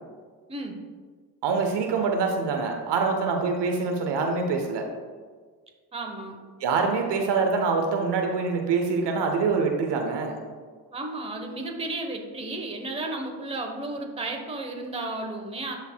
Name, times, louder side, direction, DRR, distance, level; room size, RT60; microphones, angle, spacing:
voice 1, 1.4-4.9 6.6-10.4, right 4 dB, 60° right, 3 dB, 1.0 m, -25 dB
voice 2, 5.9-6.4 10.9-15.8, right 2 dB, 10° right, 2 dB, 1.0 m, -33 dB
11.5 x 4.0 x 2.3 m, 1.5 s
supercardioid pair, 75°, 48 cm